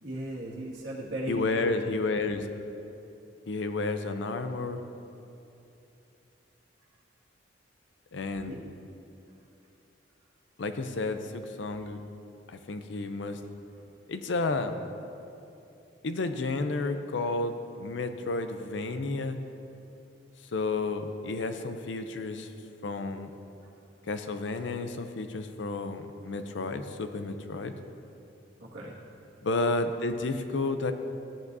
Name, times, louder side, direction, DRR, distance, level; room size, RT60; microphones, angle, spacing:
voice 1, 0.0-1.8 8.5-8.6 28.6-29.0, right 1 dB, 65° right, -6 dB, 1.9 m, -36 dB
voice 2, 1.3-2.5 3.5-4.8 8.1-8.6 10.6-12.0 12.5-13.4 14.1-14.8 16.0-19.4 20.5-22.5 22.8-23.3 24.1-27.7 29.4-30.9, left 3 dB, 75° left, 8 dB, 0.6 m, -31 dB
14.5 x 8.2 x 2.7 m, 2.7 s
head